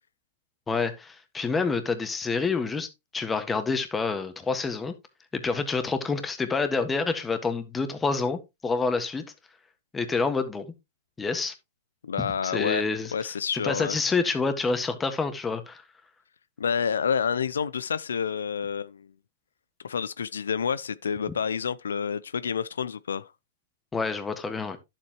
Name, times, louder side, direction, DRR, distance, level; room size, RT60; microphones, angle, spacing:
voice 1, 0.7-2.9 3.1-4.9 5.3-9.2 9.9-10.6 11.2-11.5 12.2-13.1 13.5-15.8 23.9-24.8, left 4 dB, 15° left, 1.6 m, -28 dB
voice 2, 12.0-12.9 13.1-14.0 16.6-19.1 19.8-23.3, left 7 dB, 85° left, 0.5 m, -28 dB
11.0 x 7.5 x 3.0 m
hypercardioid pair, 125°, 0 cm